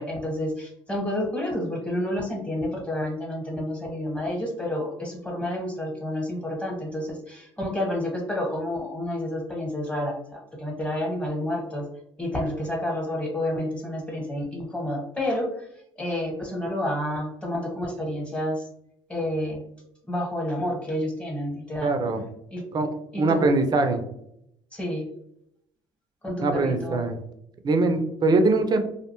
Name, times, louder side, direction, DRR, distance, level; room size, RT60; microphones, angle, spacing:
voice 1, 0.0-11.9 12.2-15.7 16.0-18.7 19.1-19.6 20.1-21.9 22.5-22.6 23.1-23.5 24.7-25.1 26.2-27.0, left 1 dB, 10° left, -1 dB, 1.1 m, -29 dB
voice 2, 21.8-22.2 22.7-22.9 23.2-24.0 26.4-27.2 27.6-28.9, right 3 dB, 35° right, 7 dB, 0.5 m, -22 dB
2.5 x 2.1 x 2.9 m, 0.75 s
supercardioid pair, 80°, 11 cm